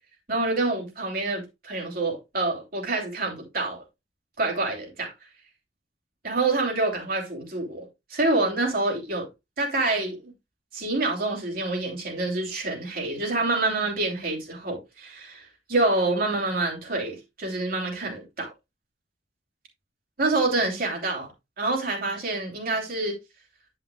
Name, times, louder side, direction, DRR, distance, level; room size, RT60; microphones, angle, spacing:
voice 1, 0.3-3.8 4.4-5.1 6.2-9.3 9.6-10.2 10.7-18.5 20.2-21.3 21.6-23.2, right 2 dB, 50° right, 3.0 m, -27 dB
10.5 x 5.9 x 2.3 m
head